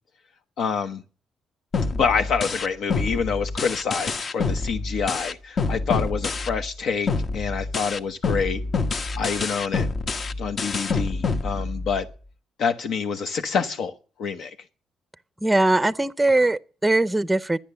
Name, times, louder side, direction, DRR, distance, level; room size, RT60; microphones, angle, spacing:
voice 1, 0.6-1.0 1.9-8.6 9.2-9.9 10.4-12.1 12.6-13.9 14.2-14.6, left 6 dB, 70° left, 0.9 m, -27 dB
sound 1, 1.7-6.8 7.1-12.1, left 4 dB, 45° left, 1.0 m, -27 dB
voice 2, 15.4-17.6, right 2 dB, 10° right, 0.6 m, -21 dB
11.5 x 10.5 x 6.8 m
cardioid pair, 90°, 0 cm